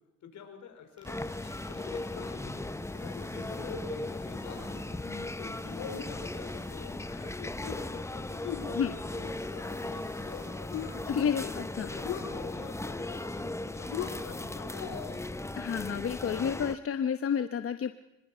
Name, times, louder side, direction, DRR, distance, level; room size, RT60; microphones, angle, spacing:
voice 1, 0.2-1.2 1.7-5.0 5.4-11.0 11.4-15.3, left 7 dB, 70° left, 4 dB, 4.9 m, -49 dB
sound 1, 1.0-16.8, left 2 dB, 10° left, 0.9 m, -37 dB
sound 2, 1.0-10.5, right 1 dB, 15° right, 8.0 m, -61 dB
sound 3, 1.4-2.0 2.2-2.3 2.7-3.0 3.4-3.8 4.1-4.6 5.0-5.4 5.8-6.4 6.8-7.3 7.6-8.0 8.4-9.9 10.3-10.9 11.3-11.7 11.9-12.6 13.0-13.5 13.9-15.2, left 9 dB, 90° left, 7.8 m, -41 dB
voice 2, 11.1-11.9 15.6-17.9, left 7 dB, 50° left, 9 dB, 1.0 m, -30 dB
24.5 x 22.0 x 5.7 m, 0.98 s
cardioid pair, 90°, 30 cm